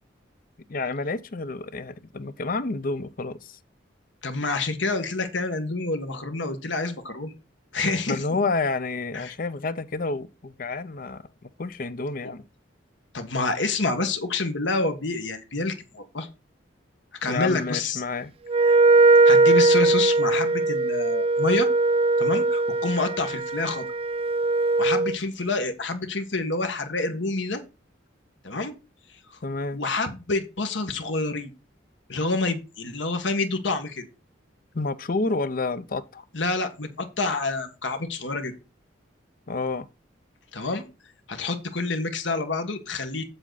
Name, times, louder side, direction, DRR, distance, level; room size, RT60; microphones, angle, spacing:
voice 1, 0.7-3.6 8.1-11.2 11.6-12.4 17.2-18.3 29.4-29.8 34.7-36.2 39.5-39.9, left 3 dB, 45° left, 0.6 m, -29 dB
voice 2, 4.2-7.3 7.7-8.2 9.1-9.3 12.2-12.3 13.1-16.3 17.2-18.0 18.7-18.8 19.2-21.7 22.2-23.9 24.8-27.6 28.4-28.7 29.7-31.5 32.1-34.1 36.3-38.5 40.5-40.8 41.3-43.3, left 3 dB, 75° left, 1.5 m, -28 dB
Wind instrument woodwind instrument, 18.5-25.2, right 3 dB, 30° right, 0.4 m, -20 dB
7.8 x 7.8 x 4.1 m
head